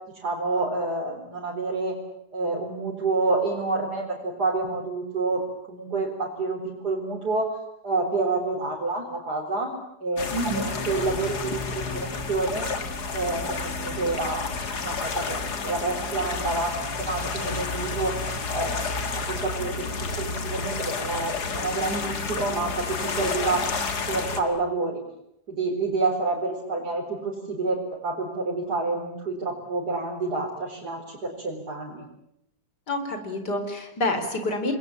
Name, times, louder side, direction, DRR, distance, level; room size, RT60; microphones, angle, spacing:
voice 1, 0.2-1.9 2.3-5.4 5.7-7.5 7.8-9.7 10.0-10.3 10.5-12.7 13.1-14.6 14.8-16.7 17.0-18.1 18.5-19.8 20.1-23.6 24.1-25.0 25.5-32.0, right 3 dB, 75° right, -3 dB, 4.8 m, -28 dB
sound 1, 10.2-24.4, left 4 dB, 75° left, 2.7 m, -30 dB
voice 2, 10.3-10.7 32.9-34.7, left 1 dB, 90° left, 7 dB, 4.6 m, -28 dB
29.0 x 21.0 x 8.8 m, 0.79 s
omnidirectional pair, 1.7 m